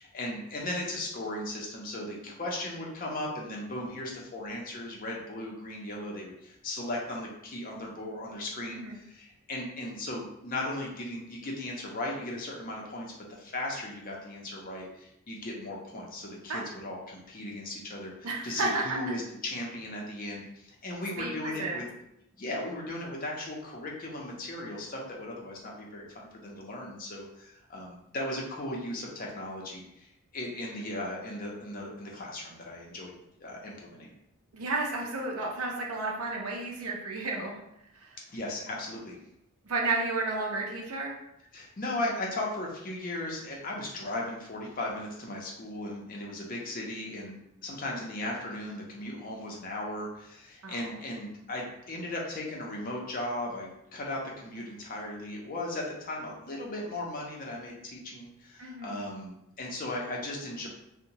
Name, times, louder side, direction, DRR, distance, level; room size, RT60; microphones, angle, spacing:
voice 1, 0.0-21.8 22.4-33.1 33.4-34.2 38.3-39.2 41.5-60.7, left 1 dB, 40° left, -2 dB, 0.5 m, -37 dB
voice 2, 8.7-9.0 16.5-16.6 18.2-19.0 21.2-21.9 34.5-37.6 37.9-38.2 39.6-41.1 50.6-50.8 58.6-59.0, right 3 dB, 90° right, -1 dB, 0.5 m, -32 dB
2.8 x 2.1 x 2.6 m, 0.81 s
head